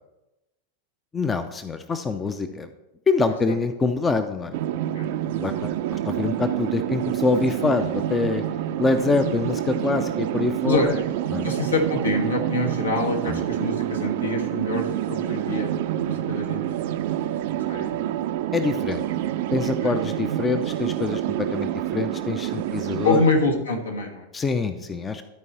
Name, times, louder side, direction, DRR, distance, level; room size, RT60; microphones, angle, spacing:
voice 1, 1.1-2.7 3.1-4.6 5.4-8.4 8.8-10.9 11.3-11.5 13.3-13.4 18.5-19.1 19.5-23.2 24.3-25.2, left 3 dB, 15° left, 10 dB, 0.5 m, -25 dB
sound 1, 4.5-23.3, right 12 dB, 50° right, 0.4 m, -27 dB
voice 2, 10.6-11.0 11.4-16.8 17.2-17.3 17.7-18.2 19.8-19.9 23.0-24.3, left 2 dB, 75° left, 2 dB, 1.4 m, -26 dB
12.5 x 4.6 x 4.2 m, 0.97 s
figure-of-eight pair, 90°, 0 cm